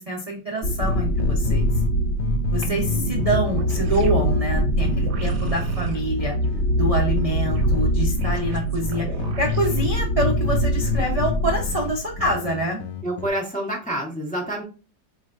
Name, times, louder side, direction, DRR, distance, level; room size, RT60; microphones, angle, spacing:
voice 1, 0.0-1.7 2.5-6.3 6.8-12.8, right 1 dB, 45° right, -2 dB, 0.4 m, -26 dB
sound 1, 0.6-12.4, equal, 50° left, 0.9 m, -24 dB
sound 2, 0.8-1.9 2.2-7.9 8.2-9.9 10.2-13.3, left 8 dB, 75° left, 0.8 m, -30 dB
sound 3, 2.6-10.1, right 4 dB, 65° right, 1.2 m, -32 dB
voice 2, 13.0-14.6, right 1 dB, 5° left, -1 dB, 0.6 m, -27 dB
4.2 x 3.2 x 2.4 m, 0.36 s
omnidirectional pair, 2.1 m